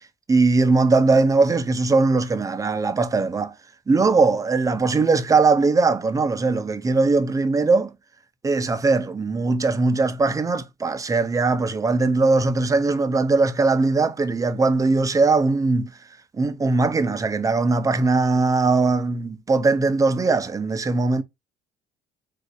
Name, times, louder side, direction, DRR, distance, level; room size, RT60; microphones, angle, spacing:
voice 1, 0.3-3.5 3.9-7.9 8.4-15.9 16.4-21.2, right 3 dB, 20° right, 0.6 m, -20 dB
3.8 x 2.7 x 4.6 m
cardioid pair, 110°, 17 cm